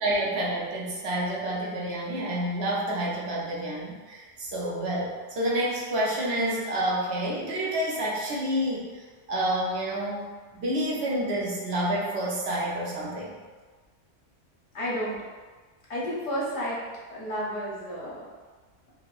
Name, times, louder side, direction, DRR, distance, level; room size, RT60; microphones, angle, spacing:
voice 1, 0.0-13.4, right 1 dB, 65° right, -5 dB, 0.8 m, -29 dB
voice 2, 14.7-15.2 15.9-16.8 17.1-18.2, equal, 80° left, -6 dB, 1.3 m, -31 dB
4.0 x 2.1 x 2.3 m, 1.4 s
omnidirectional pair, 1.3 m